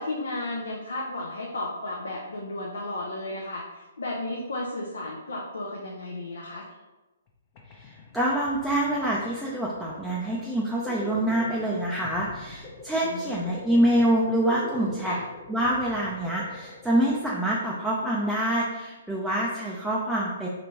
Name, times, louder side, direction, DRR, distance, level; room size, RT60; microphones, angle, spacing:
voice 1, 0.0-6.7 13.0-13.6 15.1-15.2, left 2 dB, 65° left, -1 dB, 0.6 m, -34 dB
sound 1, 7.3-7.4 7.5-18.2, left 2 dB, 35° left, 0.7 m, -43 dB
voice 2, 7.8-15.2 15.5-20.5, right 1 dB, ahead, -5 dB, 0.5 m, -26 dB
5.1 x 3.3 x 2.9 m, 1.1 s
figure-of-eight pair, 125°, 0 cm